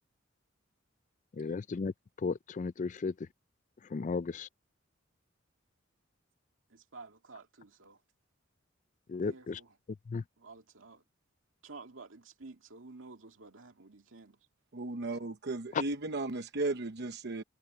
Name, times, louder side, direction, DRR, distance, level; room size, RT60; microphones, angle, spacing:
voice 1, 1.4-1.9 2.2-3.1 3.9-4.5 9.1-9.6 10.1-10.2, left 4 dB, 40° left, 0.4 m, -34 dB
voice 2, 6.7-8.0 9.3-9.8 10.4-11.0 11.6-14.4, right 3 dB, 75° right, 2.2 m, -51 dB
voice 3, 14.7-17.4, right 2 dB, 55° right, 0.9 m, -35 dB
head